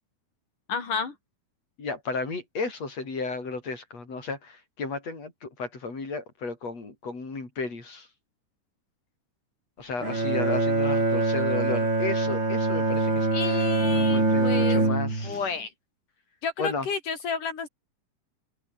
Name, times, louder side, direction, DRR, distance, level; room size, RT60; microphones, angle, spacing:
voice 1, 0.7-1.1 13.3-14.9 15.2-15.7 16.4-17.7, left 5 dB, 85° left, 5.8 m, -31 dB
voice 2, 1.8-8.1 9.8-15.4 16.6-16.9, left 4 dB, 55° left, 8.0 m, -34 dB
Bowed string instrument, 10.0-15.5, right 2 dB, 35° right, 7.0 m, -24 dB
omnidirectional pair, 3.6 m